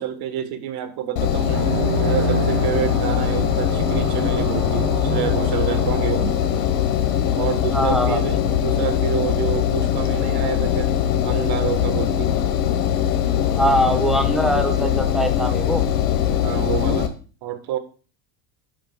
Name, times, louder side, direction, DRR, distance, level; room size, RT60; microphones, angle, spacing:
voice 1, 0.0-1.7 2.0-6.4 7.3-10.9 11.2-12.3 16.4-17.1 17.4-17.8, right 10 dB, 60° right, 1.5 m, -28 dB
Engine, 1.2-17.1, left 10 dB, 90° left, 1.4 m, -21 dB
sound 1, 1.5-7.6, right 6 dB, 85° right, 3.3 m, -29 dB
voice 2, 7.7-8.9 13.5-15.8, equal, ahead, 1.5 m, -23 dB
10.5 x 8.0 x 2.4 m
supercardioid pair, 110°, 45 cm